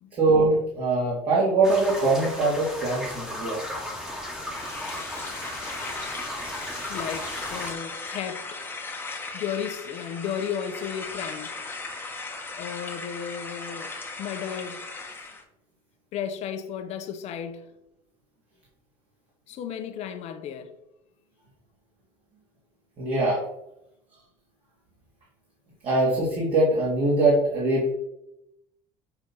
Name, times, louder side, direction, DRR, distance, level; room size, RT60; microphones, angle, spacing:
voice 1, 0.1-3.6 23.0-23.4 25.8-27.9, right 2 dB, 45° right, 3.1 m, -22 dB
sound 1, 1.6-7.7, left 1 dB, 5° right, 2.0 m, -35 dB
sound 2, 4.5-15.4, left 3 dB, 15° left, 1.6 m, -37 dB
voice 2, 6.9-8.6 9.3-11.6 12.6-13.9 14.2-14.8 16.1-17.7 19.5-20.8, left 8 dB, 55° left, 1.2 m, -34 dB
8.0 x 4.4 x 5.7 m
cardioid pair, 125°, 13 cm